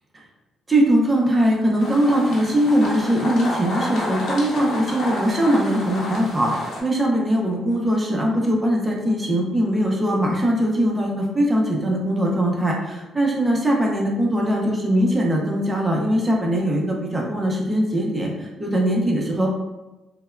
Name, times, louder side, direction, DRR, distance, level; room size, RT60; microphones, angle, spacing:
voice 1, 0.7-19.5, equal, 15° right, -1 dB, 0.6 m, -21 dB
sound 1, 1.8-6.8, left 1 dB, 65° left, 0.8 m, -30 dB
3.3 x 2.1 x 2.2 m, 1.0 s
cardioid pair, 90°, 0 cm